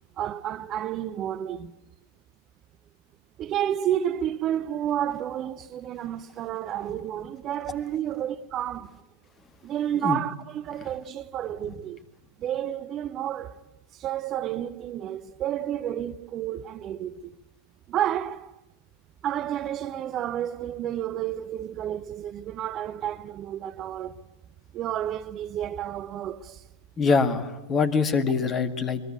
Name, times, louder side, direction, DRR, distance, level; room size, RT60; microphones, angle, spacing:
voice 1, 0.2-1.8 3.4-9.0 9.6-12.0 12.4-13.6 13.9-17.3 17.9-18.6 19.2-24.2 24.7-26.7, right 11 dB, 30° right, 0.7 m, -31 dB
voice 2, 27.0-29.0, left 4 dB, 25° left, 1.9 m, -24 dB
22.5 x 22.0 x 7.9 m
figure-of-eight pair, 90°, 0 cm